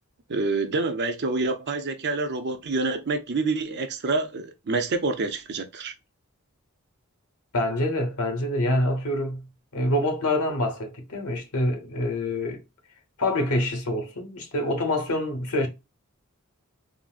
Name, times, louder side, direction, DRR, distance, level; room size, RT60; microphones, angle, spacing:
voice 1, 0.3-5.9, right 3 dB, 50° right, 0.6 m, -27 dB
voice 2, 7.5-12.6 13.2-15.7, left 1 dB, 90° left, 1.1 m, -26 dB
3.8 x 2.0 x 2.4 m
head